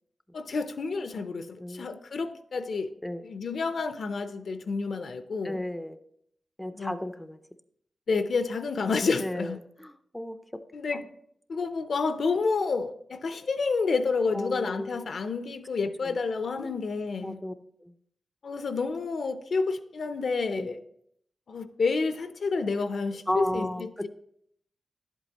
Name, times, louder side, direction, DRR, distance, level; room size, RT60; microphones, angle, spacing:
voice 1, 0.3-2.9 3.2-5.6 6.7-6.9 8.1-9.6 10.7-11.0 11.5-17.4 18.4-20.8 21.5-24.1, left 4 dB, 70° left, 10 dB, 0.6 m, -29 dB
voice 2, 5.4-6.0 6.6-7.4 9.2-10.6 14.3-15.0 16.0-16.1 16.6-16.8 17.2-17.5 17.8-17.9 20.5-20.8 23.3-24.1, left 1 dB, 5° left, 10 dB, 0.4 m, -34 dB
11.0 x 8.2 x 2.9 m, 0.70 s
wide cardioid pair, 95°, 0 cm